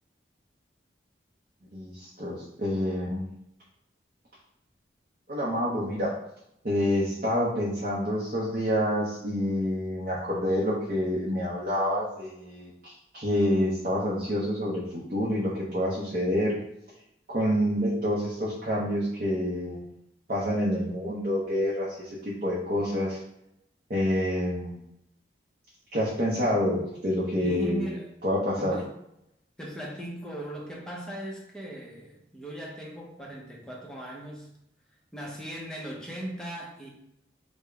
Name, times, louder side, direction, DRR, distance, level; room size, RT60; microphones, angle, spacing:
voice 1, 1.7-3.2 5.3-6.1 6.6-16.5 17.3-19.8 20.3-23.2 23.9-24.8 25.9-27.9 28.2-28.8, equal, 45° right, -6 dB, 0.6 m, -27 dB
voice 2, 27.4-28.1 28.6-28.9 29.6-34.5 35.1-36.9, equal, 5° left, -3 dB, 0.6 m, -38 dB
3.7 x 2.1 x 3.3 m, 0.80 s
head